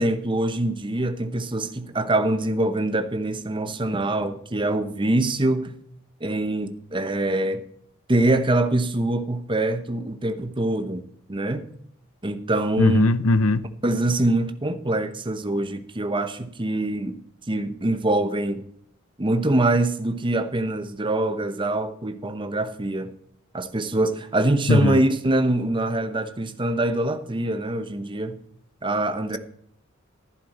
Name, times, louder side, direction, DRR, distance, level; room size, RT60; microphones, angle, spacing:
voice 1, 0.0-5.7 6.2-7.6 8.1-11.6 12.2-13.1 13.8-17.2 17.5-18.6 19.2-23.1 23.5-28.4 28.8-29.4, right 2 dB, 25° right, 0.9 m, -24 dB
voice 2, 12.8-13.7 24.7-25.0, left 2 dB, 75° left, 0.7 m, -19 dB
11.0 x 11.0 x 4.3 m
head